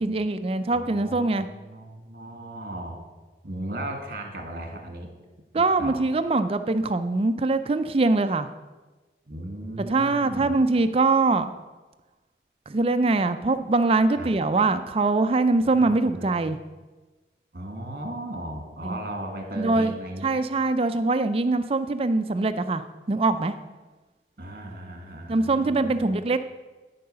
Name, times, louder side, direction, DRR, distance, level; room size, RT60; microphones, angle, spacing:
voice 1, 0.0-1.5 5.5-8.5 9.8-11.5 12.7-16.6 18.8-19.0 19.6-19.9 20.2-22.8 23.1-23.5 25.3-26.4, right 3 dB, 30° right, 10 dB, 0.4 m, -23 dB
voice 2, 0.7-3.0 3.4-5.1 5.5-6.1 9.3-10.6 14.2-14.3 15.6-16.3 17.5-20.3 24.4-26.2, right 1 dB, 50° right, 3 dB, 1.9 m, -36 dB
13.5 x 4.7 x 6.7 m, 1.2 s
head